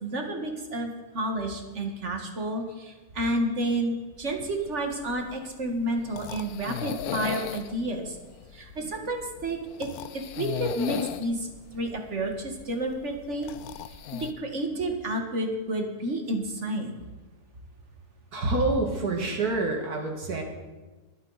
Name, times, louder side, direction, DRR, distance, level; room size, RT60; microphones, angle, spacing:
voice 1, 0.0-8.2 8.5-9.9 10.1-13.5 14.2-16.9, right 1 dB, 50° right, 3 dB, 1.8 m, -30 dB
sound 1, 4.2-14.3, left 10 dB, 75° left, 1.1 m, -38 dB
voice 2, 18.3-20.4, right 2 dB, 70° right, 1 dB, 2.5 m, -27 dB
22.5 x 8.2 x 4.0 m, 1.2 s
omnidirectional pair, 1.7 m